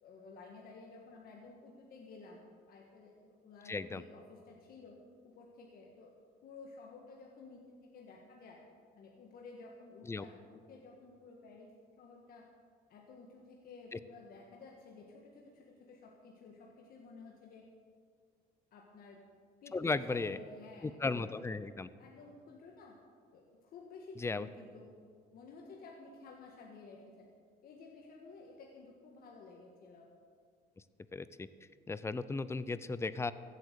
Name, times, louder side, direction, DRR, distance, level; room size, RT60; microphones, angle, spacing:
voice 1, 0.0-4.9 5.2-6.1 6.4-8.6 8.9-11.7 12.0-12.5 12.9-17.6 18.7-19.2 19.6-21.4 22.0-23.0 23.3-24.9 25.3-27.3 27.6-30.1, left 3 dB, 60° left, -1 dB, 1.7 m, -53 dB
voice 2, 3.7-4.0 10.1-10.2 13.9-14.0 19.7-20.4 20.8-21.9 24.2-24.5 31.1-31.5 31.9-33.3, left 3 dB, 15° left, 15 dB, 0.5 m, -35 dB
15.5 x 8.4 x 6.9 m, 2.1 s
cardioid pair, 110°, 17 cm